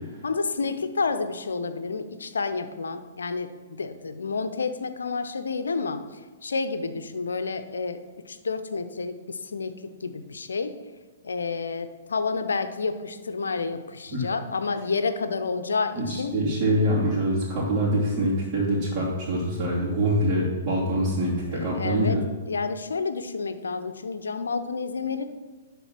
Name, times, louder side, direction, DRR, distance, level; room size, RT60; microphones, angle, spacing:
voice 1, 0.2-8.0 8.3-9.7 10.0-10.8 11.2-16.4 21.5-22.2 22.5-25.3, left 4 dB, 80° left, 10 dB, 0.7 m, -30 dB
voice 2, 16.0-22.2, right 1 dB, 30° right, -9 dB, 2.7 m, -24 dB
11.0 x 3.8 x 5.9 m, 1.3 s
hypercardioid pair, 120°, 0 cm